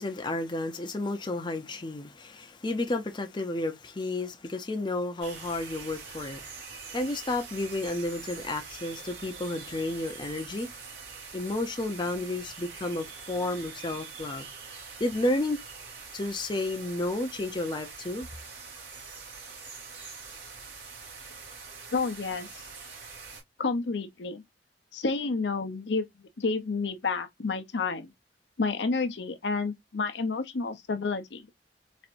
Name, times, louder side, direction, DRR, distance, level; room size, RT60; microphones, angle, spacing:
voice 1, 0.0-10.7 11.3-14.5 15.0-15.6 16.1-18.3, left 2 dB, 25° left, 0.5 m, -32 dB
sound 1, 5.2-23.4, right 5 dB, 80° right, 1.8 m, -44 dB
voice 2, 21.9-22.6 23.6-24.4 24.9-26.1 26.4-28.1 28.6-31.4, left 4 dB, 75° left, 0.6 m, -30 dB
4.2 x 2.6 x 2.5 m
head